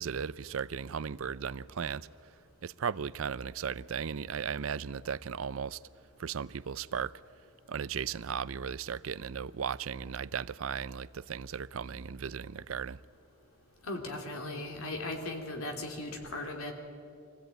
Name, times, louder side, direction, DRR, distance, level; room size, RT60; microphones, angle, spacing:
voice 1, 0.0-2.1 2.6-5.8 6.2-7.1 7.7-13.0, right 7 dB, 75° right, 0.5 m, -36 dB
voice 2, 13.8-16.7, left 2 dB, 85° left, 3.1 m, -37 dB
24.0 x 16.5 x 9.1 m
head